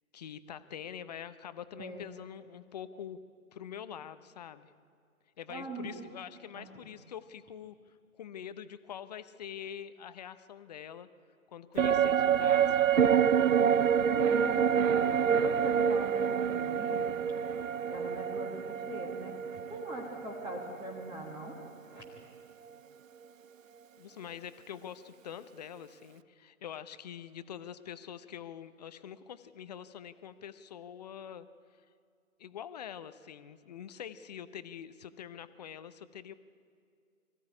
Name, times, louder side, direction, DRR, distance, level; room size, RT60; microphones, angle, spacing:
voice 1, 0.1-3.2 3.5-4.7 5.4-7.8 8.2-11.1 11.5-12.8 24.0-31.5 32.4-36.3, left 9 dB, 30° left, 13 dB, 0.8 m, -45 dB
voice 2, 5.5-6.0 6.5-6.7 14.1-17.1 17.5-17.6 17.9-22.0, right 1 dB, 10° right, 1 dB, 1.5 m, -41 dB
sound 1, 11.8-21.3 21.6-21.7, right 8 dB, 65° right, 0.7 m, -27 dB
24.0 x 15.0 x 9.7 m, 2.3 s
figure-of-eight pair, 135°, 42 cm